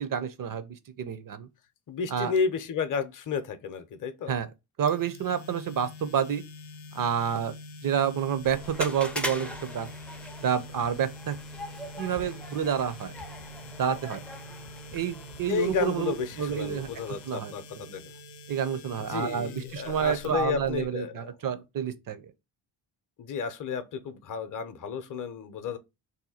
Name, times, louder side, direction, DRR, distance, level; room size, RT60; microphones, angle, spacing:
voice 1, 0.0-1.5 2.1-2.3 4.3-4.5 4.8-6.4 6.9-7.5 7.8-9.9 10.4-11.4 12.0-13.1 13.8-14.2 14.9-18.0 18.5-22.2, right 8 dB, 45° right, 0.5 m, -29 dB
voice 2, 1.9-4.3 15.5-18.1 19.1-21.3 23.2-25.8, left 6 dB, 45° left, 0.6 m, -32 dB
sound 1, 4.9-20.8, left 2 dB, 90° left, 0.5 m, -45 dB
sound 2, 8.4-17.3, left 1 dB, 5° left, 0.4 m, -41 dB
2.8 x 2.2 x 4.1 m
cardioid pair, 65°, 46 cm